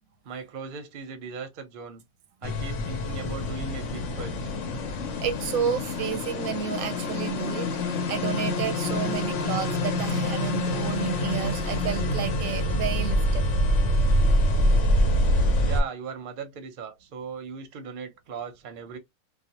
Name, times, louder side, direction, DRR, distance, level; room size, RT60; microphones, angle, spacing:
voice 1, 0.2-2.0 2.4-4.5 15.6-19.0, right 5 dB, 50° right, 0.7 m, -38 dB
sound 1, 2.4-15.8, left 1 dB, 65° left, 0.9 m, -26 dB
voice 2, 5.2-13.4, right 8 dB, 85° right, 1.1 m, -31 dB
2.4 x 2.2 x 2.8 m
omnidirectional pair, 1.4 m